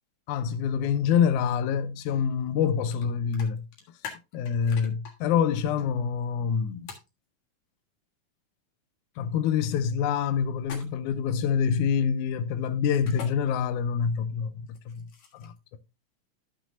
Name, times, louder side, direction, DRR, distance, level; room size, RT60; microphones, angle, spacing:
voice 1, 0.3-3.7 4.3-6.9 9.2-15.1 15.3-15.5, left 7 dB, 90° left, 2.1 m, -26 dB
sound 1, 2.9-3.0 3.3-5.1 6.9-7.1 10.6-11.2 12.9-13.3 14.7-15.6, left 7 dB, 70° left, 3.0 m, -42 dB
13.5 x 6.1 x 2.6 m
omnidirectional pair, 3.4 m